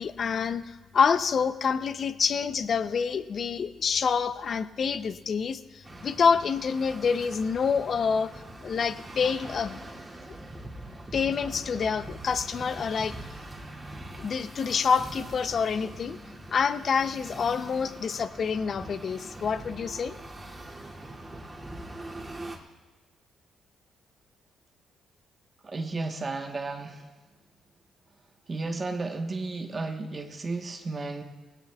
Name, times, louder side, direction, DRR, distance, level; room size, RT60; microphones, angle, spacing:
voice 1, 0.0-8.3 8.6-9.8 11.1-13.1 14.2-16.2 16.5-20.2, left 6 dB, 50° left, 13 dB, 0.5 m, -27 dB
sound 1, 5.8-22.6, right 1 dB, 20° right, 2.5 m, -43 dB
voice 2, 25.6-27.0 28.5-31.2, right 3 dB, 35° right, 4 dB, 1.1 m, -33 dB
20.0 x 16.5 x 2.3 m, 1.2 s
cardioid pair, 90°, 0 cm